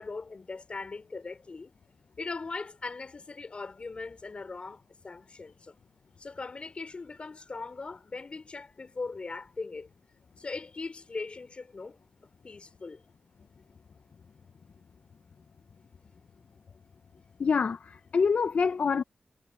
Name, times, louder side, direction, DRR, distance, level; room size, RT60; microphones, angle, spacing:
voice 1, 0.0-1.7 2.2-5.8 6.2-9.9 10.4-13.0, left 3 dB, 50° left, 3.3 m, -40 dB
voice 2, 17.4-19.0, left 5 dB, 70° left, 0.5 m, -26 dB
wide cardioid pair, 70°, 2 cm